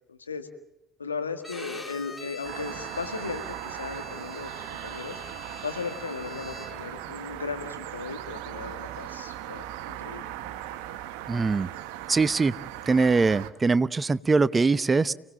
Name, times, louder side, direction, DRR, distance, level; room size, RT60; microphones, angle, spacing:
voice 1, 0.1-0.5 1.0-5.2 5.6-10.3, left 5 dB, 90° left, 7 dB, 1.6 m, -36 dB
Bowed string instrument, 1.4-7.0, left 3 dB, 15° left, 2.6 m, -44 dB
sound 1, 2.4-13.5, right 13 dB, 70° right, 1.3 m, -38 dB
voice 2, 11.3-11.7 12.1-12.5 12.9-15.1, right 4 dB, 25° right, 17 dB, 0.9 m, -22 dB
29.5 x 18.5 x 7.4 m, 0.91 s
hypercardioid pair, 55°, 0 cm